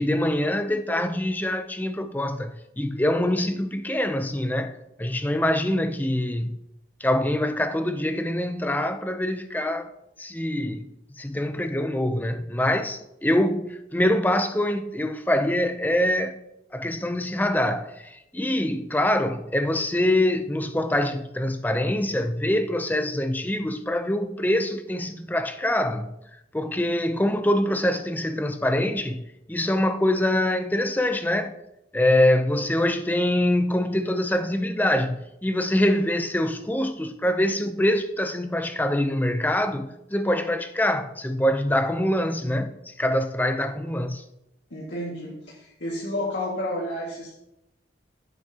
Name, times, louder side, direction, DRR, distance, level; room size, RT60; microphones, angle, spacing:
voice 1, 0.0-6.6 7.0-9.9 10.2-10.9 11.2-16.4 16.7-26.1 26.5-29.2 29.5-31.5 31.9-44.2, left 1 dB, 10° left, 0.5 m, -24 dB
voice 2, 44.7-47.4, left 1 dB, 85° left, 1.9 m, -31 dB
15.0 x 8.0 x 2.9 m
head